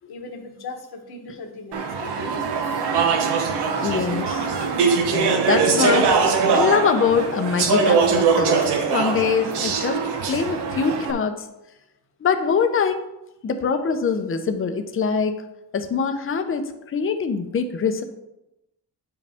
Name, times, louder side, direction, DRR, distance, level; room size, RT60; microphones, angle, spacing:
voice 1, 0.1-2.3, left 3 dB, 65° left, 4 dB, 1.3 m, -38 dB
Speech / Chatter, 1.7-11.1, right 5 dB, 75° right, 1.1 m, -21 dB
voice 2, 3.8-4.5 5.1-6.2 6.5-8.6 8.9-10.0 10.3-11.4 12.2-13.0 13.4-15.4 15.7-18.0, left 6 dB, 30° left, 8 dB, 0.7 m, -23 dB
9.4 x 4.9 x 3.5 m, 0.91 s
cardioid pair, 135°, 41 cm